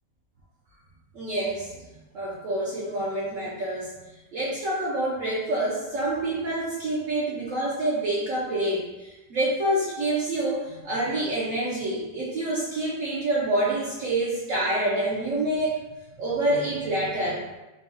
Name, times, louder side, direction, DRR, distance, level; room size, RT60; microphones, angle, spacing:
voice 1, 1.1-1.7 2.1-3.9 4.3-15.8 16.2-17.5, right 1 dB, 65° right, -6 dB, 0.8 m, -27 dB
3.5 x 2.3 x 2.7 m, 1.1 s
omnidirectional pair, 1.8 m